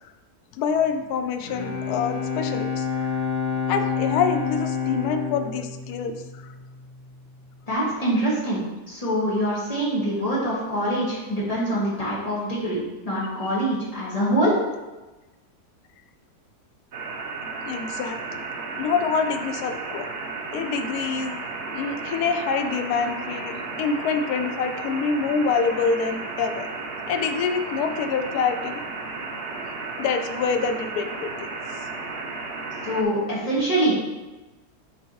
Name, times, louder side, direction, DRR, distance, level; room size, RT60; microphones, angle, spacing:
voice 1, 0.6-3.2 3.7-6.5 17.7-18.4 18.8-20.1 20.5-21.4 21.7-26.7 27.1-28.8 30.0-31.5, left 5 dB, 75° left, 7 dB, 1.1 m, -26 dB
Bowed string instrument, 1.2-7.0, left 6 dB, 40° left, 0.8 m, -28 dB
voice 2, 7.7-8.6 8.9-12.8 13.0-14.5 32.8-34.1, right 1 dB, 25° left, -7 dB, 2.0 m, -24 dB
sound 1, 16.9-33.0, right 3 dB, 55° right, 0.7 m, -34 dB
7.0 x 4.9 x 3.1 m, 1.1 s
omnidirectional pair, 1.7 m